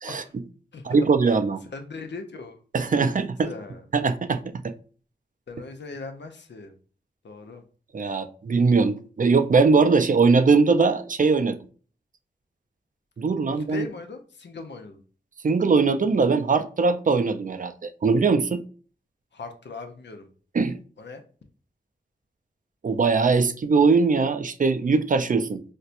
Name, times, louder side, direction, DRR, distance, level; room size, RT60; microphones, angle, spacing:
voice 1, 0.8-1.6 2.7-3.5 3.9-4.7 7.9-11.6 13.2-13.9 15.4-18.6 20.5-20.8 22.8-25.6, right 4 dB, 50° right, 9 dB, 0.4 m, -21 dB
voice 2, 1.7-2.6 3.0-3.8 5.5-6.8 7.2-7.6 13.5-15.0 19.3-20.3 21.0-21.2, left 3 dB, 80° left, 5 dB, 0.6 m, -39 dB
4.1 x 2.2 x 2.5 m, 0.41 s
wide cardioid pair, 55°, 18 cm